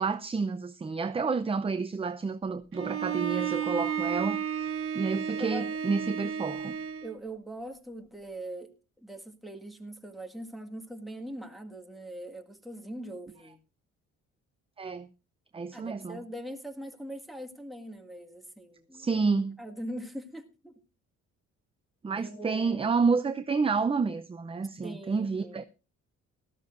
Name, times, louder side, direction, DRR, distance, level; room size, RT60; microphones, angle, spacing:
voice 1, 0.0-6.8 14.8-15.1 15.5-16.2 18.9-19.6 22.0-25.6, right 4 dB, 20° right, 0.6 m, -30 dB
Bowed string instrument, 2.7-7.1, right 8 dB, 45° right, 1.6 m, -32 dB
voice 2, 5.3-5.7 7.0-13.6 15.7-19.2 19.6-20.8 22.1-22.9 24.8-25.6, right 1 dB, ahead, 1.9 m, -42 dB
18.0 x 13.5 x 2.5 m
cardioid pair, 90°, 30 cm